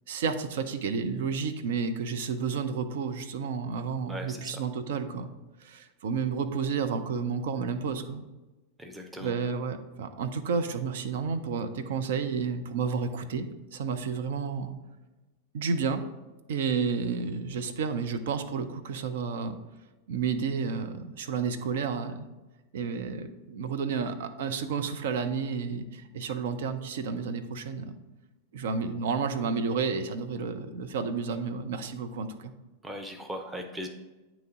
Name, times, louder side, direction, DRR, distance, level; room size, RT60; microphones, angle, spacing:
voice 1, 0.1-5.3 5.6-8.2 9.2-14.7 15.5-16.0 16.5-19.6 20.1-22.3 22.7-28.0 28.5-32.5, right 5 dB, 55° right, 8 dB, 0.5 m, -31 dB
voice 2, 4.1-4.6 8.8-9.4 32.8-33.9, equal, 10° right, 3 dB, 0.7 m, -38 dB
9.0 x 3.0 x 3.7 m, 1.1 s
figure-of-eight pair, 90°, 0 cm